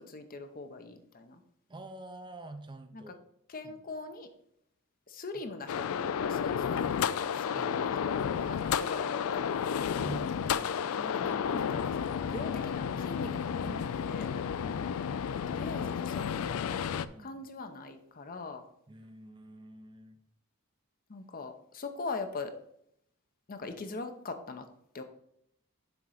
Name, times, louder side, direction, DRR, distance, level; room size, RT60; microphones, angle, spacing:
voice 1, 0.0-1.4 2.9-3.1 3.5-4.3 5.1-10.2 11.0-14.3 15.5-16.9 17.2-18.6 21.1-22.5 23.5-24.7 24.9-25.0, left 3 dB, 40° left, 7 dB, 0.7 m, -42 dB
voice 2, 1.7-3.2 3.6-3.7 5.3-5.4 7.6-7.8 10.0-11.0 14.5-14.9 17.0-17.4 18.9-20.2, right 2 dB, 20° right, 8 dB, 0.5 m, -47 dB
sound 1, 5.7-17.1, left 7 dB, 65° left, 0.3 m, -32 dB
7.1 x 3.8 x 6.3 m, 0.73 s
head